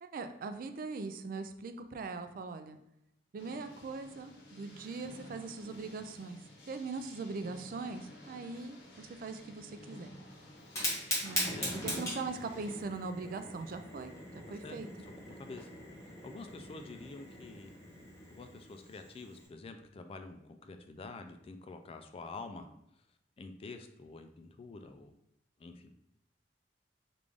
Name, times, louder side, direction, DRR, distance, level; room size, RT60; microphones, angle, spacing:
voice 1, 0.0-2.8 3.3-6.4 6.7-10.1 11.2-11.5 11.8-14.9, right 4 dB, 55° right, 8 dB, 0.3 m, -41 dB
sound 1, 3.4-12.8, left 1 dB, 70° left, 0.8 m, -54 dB
Fire, 10.6-19.5, equal, 15° left, 1.4 m, -40 dB
voice 2, 14.5-14.8 15.0-15.7 16.1-17.7 18.3-22.7 23.4-25.1 25.6-25.9, left 3 dB, 35° left, 7 dB, 0.3 m, -48 dB
3.3 x 2.5 x 3.5 m, 0.83 s
head